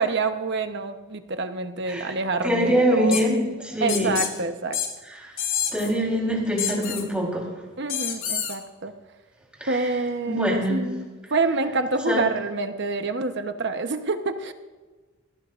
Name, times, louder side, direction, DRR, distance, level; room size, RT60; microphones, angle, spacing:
voice 1, 0.0-3.2 3.8-4.8 7.8-8.9 9.6-14.5, right 3 dB, 55° right, 7 dB, 1.0 m, -27 dB
voice 2, 2.4-4.1 5.2-5.3 5.7-7.5 9.6-9.8 10.3-10.8 12.1-12.2, equal, 5° right, -2 dB, 3.7 m, -24 dB
sound 1, 3.1-3.2 3.9-4.3 4.7-4.9 5.4-5.9 6.6-7.0 7.9-8.6, left 8 dB, 70° left, 2.1 m, -27 dB
21.0 x 16.5 x 2.5 m, 1.3 s
head